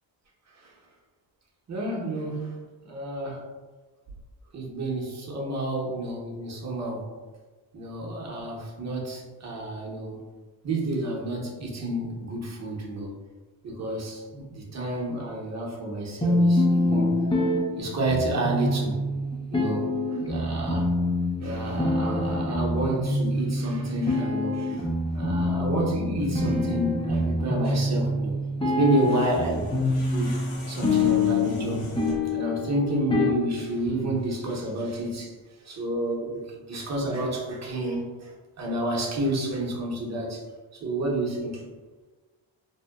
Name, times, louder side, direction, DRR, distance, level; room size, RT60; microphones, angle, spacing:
voice 1, 1.7-2.5 2.8-3.4 4.5-7.1 7.7-10.2 10.6-13.1 13.6-17.1 17.8-19.0 19.5-20.9 21.4-24.9 25.1-28.3 28.6-30.3 30.7-31.9 32.3-35.3 35.6-38.3 38.6-40.4 40.8-41.7, right 1 dB, 35° right, -2 dB, 0.8 m, -30 dB
sound 1, 16.2-34.2, left 2 dB, 10° left, 0.4 m, -26 dB
sound 2, 28.8-32.4, left 1 dB, 85° left, 0.8 m, -44 dB
2.8 x 2.1 x 2.2 m, 1.3 s
cardioid pair, 80°, 48 cm